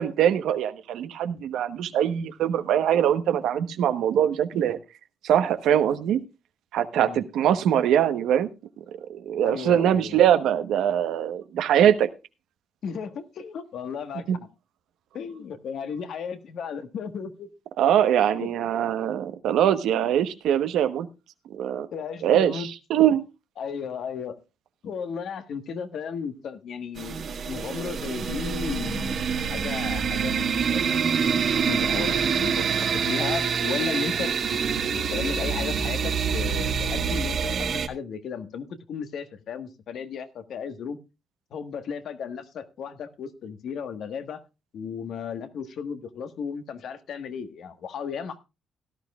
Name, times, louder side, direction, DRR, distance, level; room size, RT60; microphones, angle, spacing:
voice 1, 0.0-4.8 5.2-6.2 6.7-8.5 9.1-12.1 14.3-14.4 17.8-21.1 21.5-21.9 22.2-23.2, right 10 dB, 80° right, 10 dB, 1.1 m, -22 dB
voice 2, 9.4-10.2 12.8-14.5 15.1-17.5 18.3-18.5 21.9-22.7 23.6-24.4 24.8-34.3 34.9-41.0 41.5-44.4 44.7-48.4, left 6 dB, 70° left, 9 dB, 1.4 m, -35 dB
sound 1, 27.0-37.9, right 6 dB, 60° right, 1.6 m, -26 dB
17.0 x 11.5 x 2.3 m, 0.27 s
cardioid pair, 90°, 0 cm